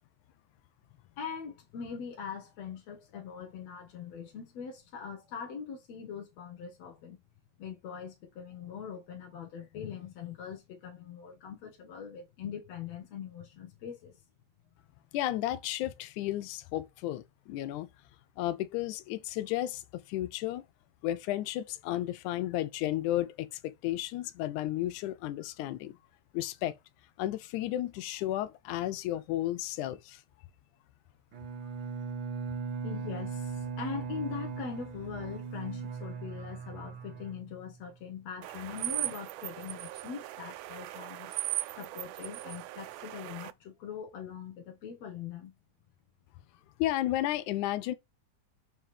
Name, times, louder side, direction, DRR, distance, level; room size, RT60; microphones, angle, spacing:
voice 1, 1.2-7.2 7.6-14.2 32.8-41.4 41.8-45.5, left 7 dB, 65° left, 2.1 m, -42 dB
voice 2, 15.1-17.9 18.4-20.7 21.0-26.0 26.3-26.8 27.2-30.2 46.8-47.9, left 14 dB, 80° left, 2.0 m, -33 dB
Bowed string instrument, 31.3-37.9, right 6 dB, 65° right, 1.3 m, -39 dB
sound 1, 38.4-43.5, right 17 dB, 85° right, 2.0 m, -38 dB
6.7 x 5.8 x 3.3 m
omnidirectional pair, 3.6 m